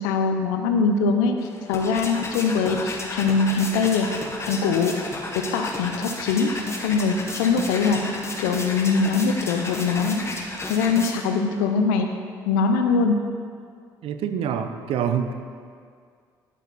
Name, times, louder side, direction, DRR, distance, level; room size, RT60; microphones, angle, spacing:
voice 1, 0.0-1.3 1.7-4.1 4.5-4.9 5.5-6.5 6.8-8.0 8.4-10.4 10.7-12.1 12.5-13.1, left 5 dB, 85° left, 5 dB, 0.6 m, -22 dB
sound 1, 1.4-11.5, left 2 dB, 25° left, 1.6 m, -33 dB
voice 2, 14.0-15.3, right 8 dB, 70° right, 8 dB, 0.7 m, -26 dB
10.0 x 8.1 x 4.1 m, 2.1 s
hypercardioid pair, 55°, 10 cm